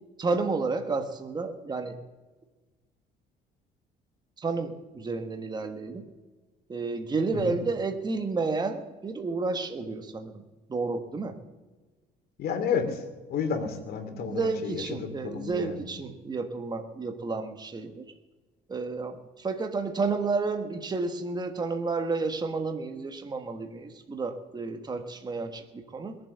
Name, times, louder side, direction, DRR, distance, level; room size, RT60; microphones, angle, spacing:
voice 1, 0.2-2.0 4.4-6.0 6.7-10.4 10.7-11.4 14.1-18.0 18.7-26.2, right 3 dB, 25° right, 6 dB, 1.4 m, -31 dB
voice 2, 12.4-13.0 13.3-15.8, left 6 dB, 65° left, 6 dB, 2.6 m, -31 dB
21.5 x 7.6 x 6.8 m, 1.2 s
cardioid pair, 110°, 17 cm